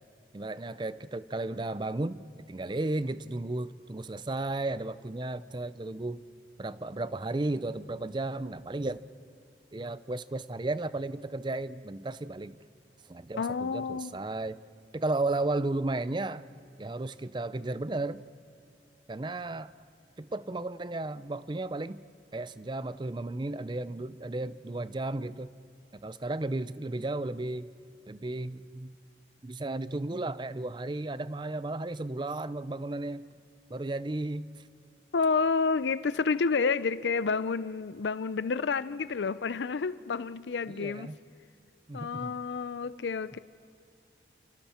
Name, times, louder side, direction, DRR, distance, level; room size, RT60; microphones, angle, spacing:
voice 1, 0.3-6.2 6.6-9.0 9.7-12.6 13.1-14.6 14.9-16.4 16.8-18.2 19.1-19.7 20.2-22.0 22.3-25.5 25.9-27.7 28.1-28.9 29.4-33.3 33.7-34.5 40.7-41.2 41.9-42.4, right 2 dB, 25° right, 16 dB, 0.5 m, -34 dB
voice 2, 13.4-14.2 35.1-41.1 41.9-43.4, left 4 dB, 80° left, 16 dB, 0.5 m, -29 dB
28.0 x 28.0 x 4.4 m, 2.6 s
head